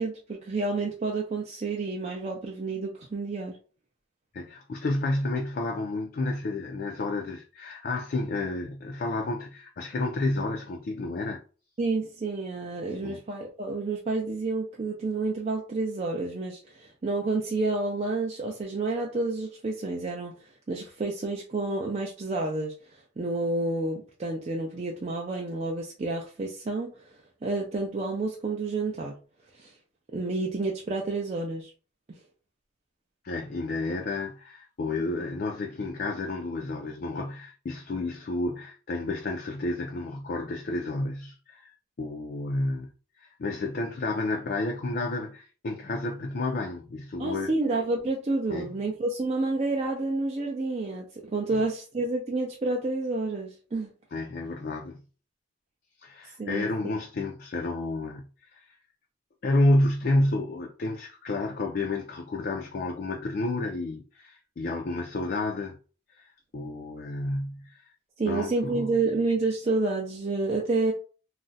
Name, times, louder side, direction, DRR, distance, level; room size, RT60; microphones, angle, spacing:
voice 1, 0.0-3.5 11.8-20.3 20.7-27.1 27.4-29.2 29.5-29.7 30.1-31.7 47.2-53.9 56.4-56.7 68.2-70.9, right 3 dB, 30° right, 0.4 m, -29 dB
voice 2, 4.3-11.4 13.0-13.2 33.2-41.7 42.0-42.9 43.2-47.5 48.5-48.7 51.5-51.6 54.1-55.0 56.0-58.6 59.4-65.8 66.1-66.2 66.5-67.8 68.3-68.9, left 2 dB, 45° left, 0.4 m, -30 dB
2.4 x 2.1 x 3.9 m
head